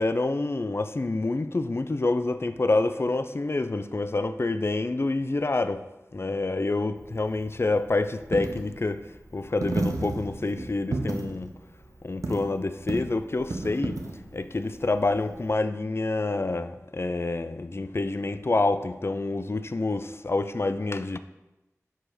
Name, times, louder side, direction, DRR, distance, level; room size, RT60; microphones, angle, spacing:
voice 1, 0.0-5.9 6.1-9.0 9.3-11.5 12.0-14.0 14.3-21.2, left 2 dB, 45° left, 0.4 m, -27 dB
Coin (dropping), 7.0-15.5, right 2 dB, 75° right, 0.7 m, -34 dB
6.0 x 4.9 x 5.0 m
wide cardioid pair, 45°, 6 cm